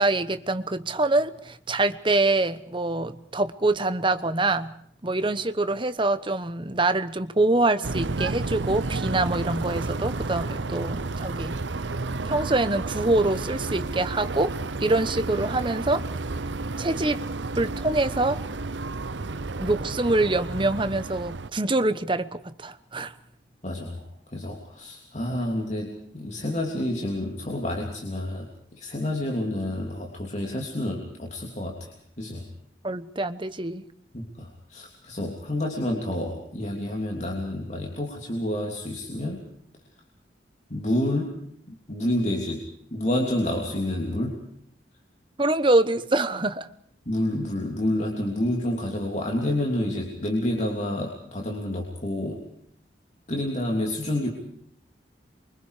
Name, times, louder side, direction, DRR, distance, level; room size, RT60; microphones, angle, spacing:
voice 1, 0.0-4.7 5.0-11.6 12.2-16.0 16.8-17.2 17.6-18.4 19.6-23.1 32.8-33.8 45.4-46.7, right 2 dB, 25° right, 12 dB, 1.1 m, -25 dB
sound 1, 7.8-21.5, right 3 dB, 85° right, 0.8 m, -31 dB
voice 2, 23.6-32.5 34.1-39.4 40.7-41.4 41.7-44.4 47.0-52.4 53.3-54.3, left 1 dB, 40° left, 0 dB, 3.3 m, -29 dB
28.0 x 24.5 x 5.1 m, 0.67 s
head